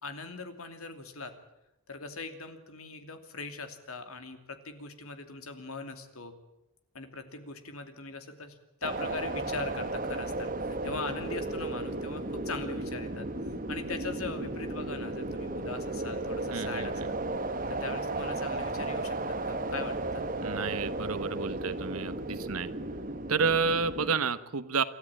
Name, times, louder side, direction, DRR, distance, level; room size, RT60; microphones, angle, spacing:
voice 1, 0.0-1.3 1.9-6.3 6.9-13.3 13.7-17.2 17.7-20.3, left 3 dB, 85° left, 8 dB, 2.7 m, -40 dB
sound 1, 8.8-24.2, right 2 dB, 40° right, 1.3 m, -34 dB
voice 2, 16.5-17.1 20.4-22.7 23.3-24.8, right 5 dB, 90° right, 12 dB, 1.2 m, -30 dB
27.5 x 13.5 x 8.9 m, 0.91 s
head